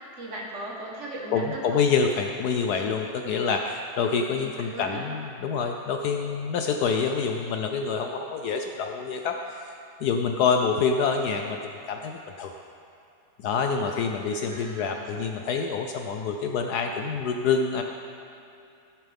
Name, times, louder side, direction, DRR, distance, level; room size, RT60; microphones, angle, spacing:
voice 1, 0.2-1.8 4.4-5.1 14.3-15.1, right 1 dB, 40° right, -3 dB, 1.6 m, -38 dB
voice 2, 1.3-9.7 10.0-11.6 11.9-12.5 13.4-17.8, left 5 dB, 70° left, 4 dB, 1.0 m, -26 dB
16.5 x 7.4 x 3.5 m, 2.6 s
omnidirectional pair, 2.0 m